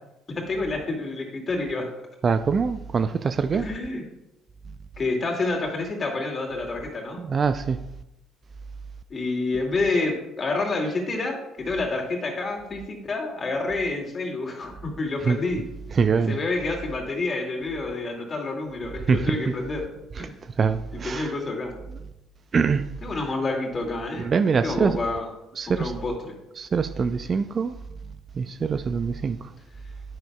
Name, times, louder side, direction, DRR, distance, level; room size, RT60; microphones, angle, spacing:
voice 1, 0.3-1.9 3.5-4.0 5.0-7.2 9.1-15.6 16.3-19.9 20.2-20.4 20.9-21.8 23.0-24.3 24.6-25.3 25.7-26.4, left 3 dB, 35° left, 2.3 m, -28 dB
voice 2, 2.2-3.7 7.2-7.8 15.3-15.4 15.9-16.4 19.1-19.4 20.2-20.3 20.6-21.3 22.5-22.9 24.2-25.0 25.6-25.9 26.6-27.8 28.4-29.5, right 5 dB, 40° right, 0.4 m, -24 dB
10.5 x 9.4 x 2.3 m
figure-of-eight pair, 50°, 0 cm